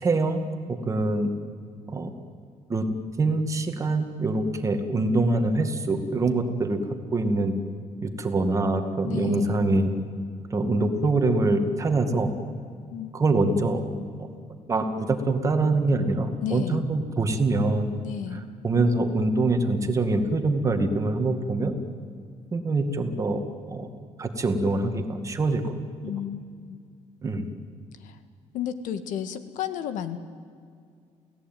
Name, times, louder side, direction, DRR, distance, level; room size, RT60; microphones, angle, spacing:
voice 1, 0.0-1.3 1.9-2.1 2.7-2.8 3.2-6.8 7.1-7.5 8.0-9.9 10.5-12.3 13.1-13.8 14.7-18.0 18.3-21.7 22.5-23.4 23.7-23.9 24.2-25.8 27.2-27.5, right 2 dB, 25° right, 6 dB, 2.2 m, -24 dB
voice 2, 9.0-9.6 12.9-13.1 16.4-16.8 18.0-18.5 26.0-26.8 28.0-28.2 28.5-30.2, left 9 dB, 80° left, 10 dB, 1.8 m, -32 dB
29.0 x 17.5 x 9.3 m, 2.2 s
cardioid pair, 145°, 13 cm